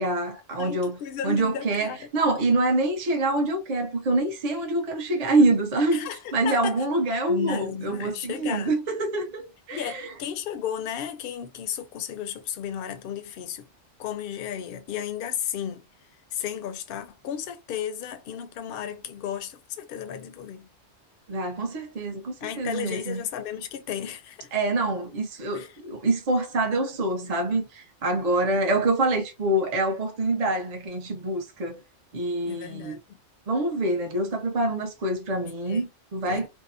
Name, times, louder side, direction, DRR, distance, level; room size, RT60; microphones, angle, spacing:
voice 1, 0.0-1.0 1.2-10.1 21.3-23.2 24.5-31.8 32.1-33.0 33.5-36.5, right 2 dB, 45° right, 0.6 m, -26 dB
voice 2, 0.6-2.1 5.9-6.8 7.3-8.8 9.7-13.7 14.0-15.9 16.3-20.7 22.4-24.5 25.5-25.8 32.4-33.2 35.6-35.8 36.2-36.5, left 9 dB, 60° left, 0.6 m, -34 dB
2.7 x 2.1 x 2.4 m
omnidirectional pair, 1.2 m